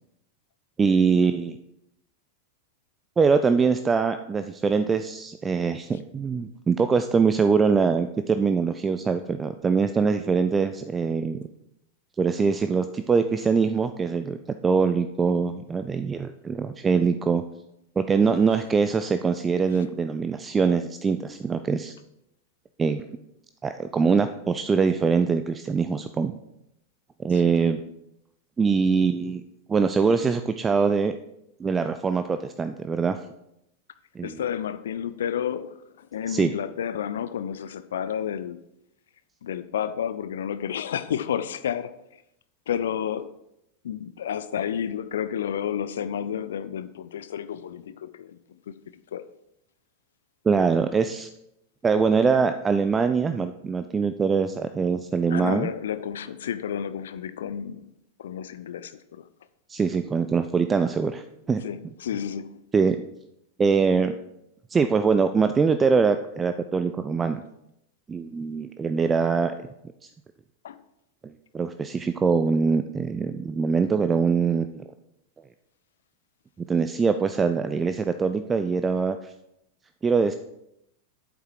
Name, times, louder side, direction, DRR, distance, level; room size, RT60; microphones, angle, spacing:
voice 1, 0.8-1.6 3.2-11.4 12.2-14.4 14.6-17.4 18.0-21.9 22.8-23.0 23.6-26.3 27.2-27.8 28.6-29.4 29.7-31.1 31.6-33.2 34.2-34.4 36.3-36.5 50.5-51.3 51.8-55.7 59.7-61.6 62.7-63.0 63.6-64.1 64.7-67.4 68.1-69.5 70.0-70.1 71.2-74.8 76.7-79.3 80.0-80.4, right 5 dB, 15° right, 10 dB, 0.4 m, -23 dB
voice 2, 34.2-38.6 39.4-42.2 42.7-43.3 43.8-49.2 55.3-57.9 58.2-59.3 61.6-62.6 70.6-70.8, left 9 dB, 60° left, 13 dB, 0.4 m, -31 dB
8.5 x 7.3 x 4.8 m, 0.81 s
figure-of-eight pair, 90°, 0 cm